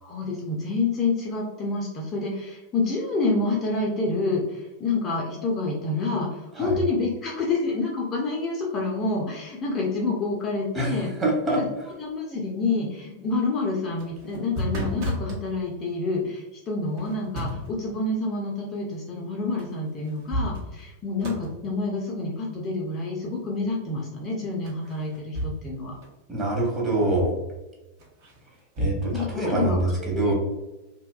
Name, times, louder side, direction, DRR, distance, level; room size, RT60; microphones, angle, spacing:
voice 1, 0.0-11.1 11.5-11.7 12.0-25.9 29.1-30.3, left 3 dB, 30° left, -2 dB, 0.5 m, -28 dB
voice 2, 11.2-11.6 26.3-27.3 28.8-30.3, right 2 dB, 15° right, -4 dB, 1.0 m, -25 dB
sound 1, 14.0-15.4 17.0-17.8 19.6-19.7 20.1-20.9 21.2-21.5 24.6-25.8 26.0-26.1 28.0-29.0, equal, 45° right, 0.8 m, -31 dB
2.8 x 2.2 x 2.2 m, 1.0 s
figure-of-eight pair, 90°, 0 cm